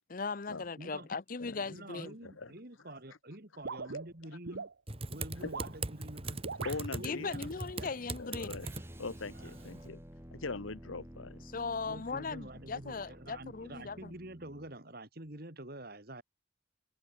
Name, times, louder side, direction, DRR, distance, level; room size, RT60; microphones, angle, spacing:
voice 1, 0.1-2.1 7.0-8.6 11.5-14.1, left 4 dB, 45° left, 0.6 m, -38 dB
voice 2, 0.8-1.1 1.7-4.7 5.1-6.4 7.0-7.9 9.3-9.7 11.8-16.2, right 1 dB, 50° right, 3.1 m, -47 dB
sound 1, 3.6-4.7 5.4-5.8 6.4-6.8, right 4 dB, 70° right, 0.9 m, -40 dB
Typing, 4.9-9.9, right 3 dB, 30° right, 1.9 m, -41 dB
voice 3, 6.6-7.3 8.2-8.7 9.0-10.0 10.3-11.4, left 3 dB, 90° left, 1.2 m, -41 dB
sound 2, 8.6-14.7, equal, 10° right, 7.1 m, -52 dB
head